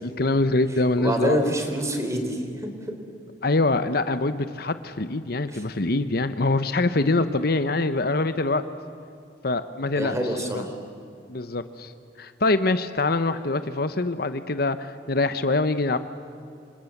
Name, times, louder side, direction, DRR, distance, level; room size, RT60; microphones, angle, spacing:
voice 1, 0.0-1.5 3.4-8.6 9.4-10.1 10.5-10.6 11.3-11.9 12.2-16.0, left 2 dB, 60° left, 11 dB, 1.0 m, -24 dB
voice 2, 1.0-2.6 5.5-5.6 6.9-7.2 9.9-10.7, equal, 20° right, 5 dB, 3.7 m, -27 dB
28.0 x 26.0 x 7.3 m, 2.6 s
head